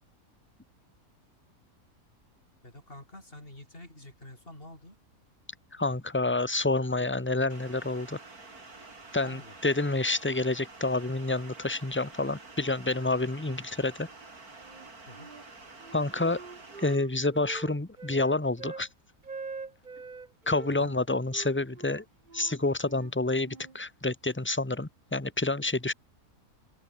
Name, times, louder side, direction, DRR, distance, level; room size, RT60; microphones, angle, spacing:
voice 1, 2.6-5.0 9.2-9.6 15.1-15.3 20.7-20.9, left 1 dB, 40° left, 6.6 m, -48 dB
voice 2, 5.7-8.2 9.1-14.1 15.9-16.4 16.8-18.9 20.5-22.0 22.3-25.9, left 2 dB, 10° left, 1.5 m, -28 dB
sound 1, 7.5-17.0, right 3 dB, 80° right, 4.4 m, -49 dB
Wind instrument woodwind instrument, 14.6-15.5 15.8-18.9 19.2-20.7 21.3-23.8, right 4 dB, 35° right, 1.5 m, -44 dB
open air
omnidirectional pair, 1.6 m